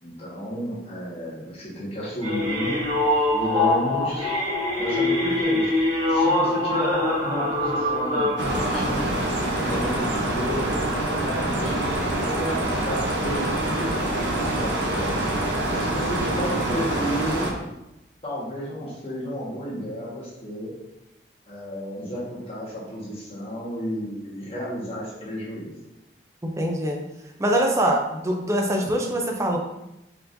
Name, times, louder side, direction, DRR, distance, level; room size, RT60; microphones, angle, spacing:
voice 1, 0.0-2.7 3.3-4.3 4.8-5.7 6.1-9.2 9.6-10.7 11.0-15.2 15.6-17.5 18.2-20.7 21.5-25.8, equal, 35° left, -6 dB, 1.4 m, -32 dB
sound 1, 2.2-9.8 10.3-10.5 11.0-11.1 11.3-11.4, left 1 dB, 35° right, 1.4 m, -24 dB
sound 2, 8.4-17.5, right 1 dB, 90° right, 0.8 m, -25 dB
voice 2, 26.4-27.0 27.4-29.6, right 1 dB, 15° right, 2 dB, 0.5 m, -23 dB
4.5 x 3.8 x 2.6 m, 0.92 s
head